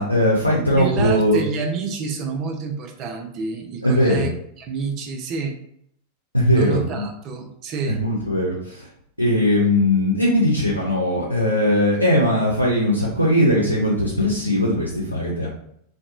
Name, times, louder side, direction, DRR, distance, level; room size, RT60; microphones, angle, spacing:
voice 1, 0.0-1.4 3.8-4.3 6.3-7.0 7.9-8.9 9.2-15.5, left 1 dB, 90° right, -5 dB, 0.5 m, -19 dB
voice 2, 0.7-4.3 4.6-5.6 6.5-8.0, right 4 dB, 35° right, 4 dB, 0.5 m, -28 dB
2.9 x 2.1 x 2.4 m, 0.70 s
figure-of-eight pair, 90°, 0 cm